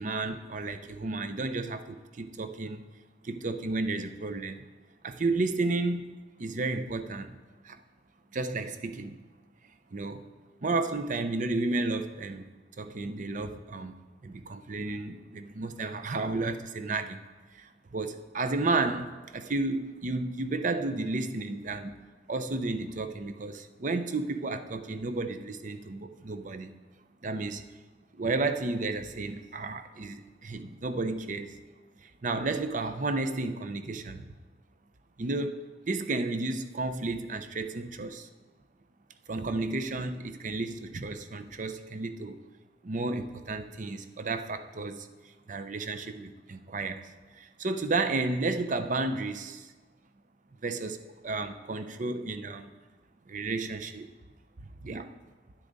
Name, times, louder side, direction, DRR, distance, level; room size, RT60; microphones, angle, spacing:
voice 1, 0.0-2.9 3.2-4.7 5.0-7.4 7.6-7.8 8.3-9.2 9.9-10.2 10.6-12.5 12.8-14.0 14.2-17.2 17.5-26.7 27.2-27.6 28.1-31.6 32.0-34.2 35.2-38.3 39.3-42.4 42.8-45.1 45.5-49.7 50.6-52.7 53.3-54.1 54.8-55.1, right 3 dB, 45° right, 10 dB, 0.6 m, -32 dB
10.0 x 9.8 x 4.0 m, 1.3 s
head